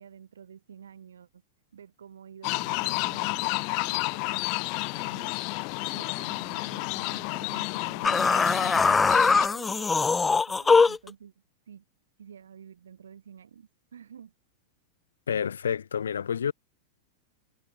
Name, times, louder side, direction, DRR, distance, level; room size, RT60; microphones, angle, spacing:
voice 1, 0.0-1.4 1.7-5.3 5.9-8.9 9.3-11.3 11.7-11.9 12.2-14.3, right 8 dB, 85° right, 3.5 m, -49 dB
sound 1, 2.4-9.5, left 36 dB, 50° left, 1.1 m, -31 dB
sound 2, 8.0-11.1, left 4 dB, 15° left, 0.3 m, -21 dB
voice 2, 15.3-16.5, left 7 dB, 85° left, 1.4 m, -29 dB
hypercardioid pair, 110°, 0 cm